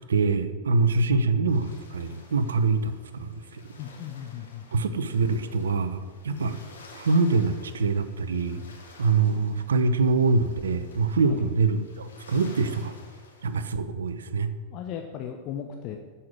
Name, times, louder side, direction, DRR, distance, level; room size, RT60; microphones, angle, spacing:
voice 1, 0.1-3.6 4.7-6.6 6.9-8.6 9.0-12.9 13.4-14.5, right 4 dB, 65° right, 11 dB, 0.8 m, -24 dB
sound 1, 1.5-13.7, left 3 dB, 70° left, 2.7 m, -52 dB
voice 2, 3.8-4.6 11.3-11.4 14.7-16.0, left 9 dB, 40° left, 3 dB, 1.0 m, -36 dB
12.5 x 5.7 x 8.8 m, 1.5 s
figure-of-eight pair, 90°, 0 cm